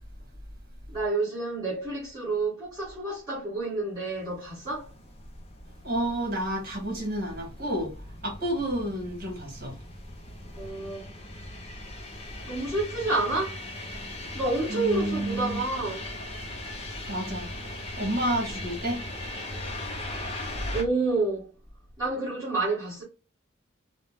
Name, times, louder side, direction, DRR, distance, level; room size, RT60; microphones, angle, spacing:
voice 1, 0.9-4.9 10.6-11.1 12.5-13.6 14.3-16.2 20.7-21.5 22.0-23.0, right 3 dB, 20° right, 2.1 m, -29 dB
sound 1, 4.1-20.8, left 1 dB, 30° left, 0.7 m, -39 dB
voice 2, 5.8-7.9 8.2-9.8 14.7-15.6 17.1-19.0, right 1 dB, 45° right, 2.0 m, -30 dB
5.3 x 2.4 x 2.3 m
head